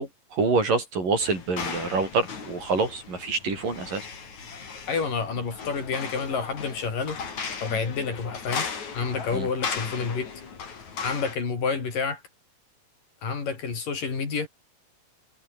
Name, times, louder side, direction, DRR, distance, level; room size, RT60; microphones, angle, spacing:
voice 1, 0.0-4.1 9.3-9.5, right 4 dB, 90° right, 9.2 m, -26 dB
sound 1, 1.2-11.4, left 5 dB, 60° left, 5.1 m, -37 dB
voice 2, 4.9-7.2 7.6-8.7 8.9-10.3 11.0-12.2 13.2-14.5, left 5 dB, 85° left, 6.8 m, -29 dB
omnidirectional pair, 3.8 m